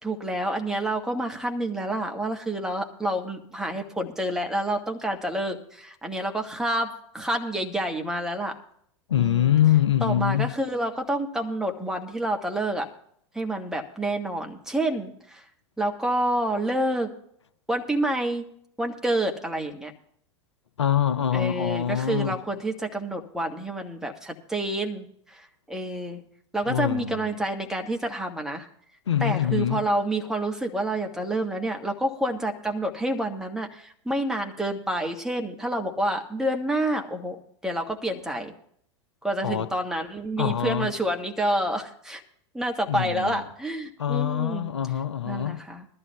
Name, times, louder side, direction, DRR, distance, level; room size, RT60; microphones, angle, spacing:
voice 1, 0.0-8.6 9.2-9.6 10.0-12.9 13.3-15.4 15.8-17.1 17.7-18.4 18.8-19.9 21.3-26.2 26.5-28.7 29.2-37.4 37.6-38.5 39.2-42.2 42.5-44.7 45.3-45.9, right 1 dB, 5° right, 1.4 m, -28 dB
voice 2, 9.1-10.5 20.8-22.4 26.7-27.4 29.1-29.8 39.4-39.7 40.4-40.9 42.9-43.4 44.0-45.6, left 10 dB, 75° left, 0.6 m, -24 dB
21.0 x 13.0 x 2.3 m
figure-of-eight pair, 85°, 15 cm